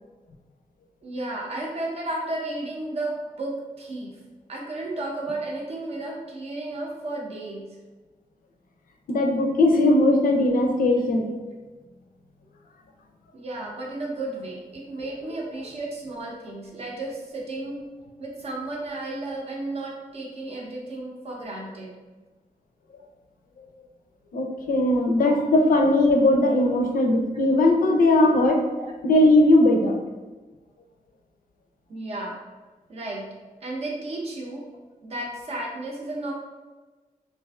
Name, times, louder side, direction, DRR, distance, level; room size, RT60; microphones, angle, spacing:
voice 1, 1.0-4.1 4.5-7.8 11.3-11.4 13.3-17.8 18.2-22.0 25.2-25.5 28.8-28.9 31.9-32.4 32.9-33.3 33.6-34.6 35.0-36.3, right 2 dB, 45° right, -2 dB, 0.6 m, -33 dB
voice 2, 9.1-11.3 24.3-28.6 29.0-30.0, left 1 dB, 75° left, 2 dB, 0.4 m, -19 dB
3.1 x 2.4 x 2.3 m, 1.2 s
wide cardioid pair, 180°, 15 cm